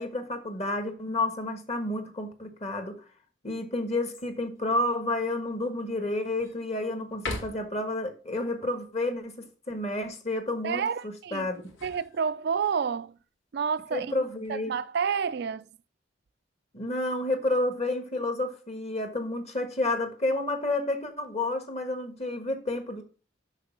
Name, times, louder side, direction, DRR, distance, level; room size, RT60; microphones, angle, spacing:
voice 1, 0.0-2.9 3.4-9.3 9.7-11.7 13.9-14.7 16.7-23.0, left 2 dB, 35° left, 1.5 m, -30 dB
sound 1, 4.1-4.6 5.2-5.3 5.8-6.6 7.1-7.9 11.4-12.7 14.1-14.6, left 2 dB, 90° left, 2.2 m, -41 dB
voice 2, 10.6-11.5 11.8-13.2 13.5-14.1 14.5-15.7, right 6 dB, 60° right, 0.4 m, -29 dB
6.5 x 6.2 x 5.9 m
head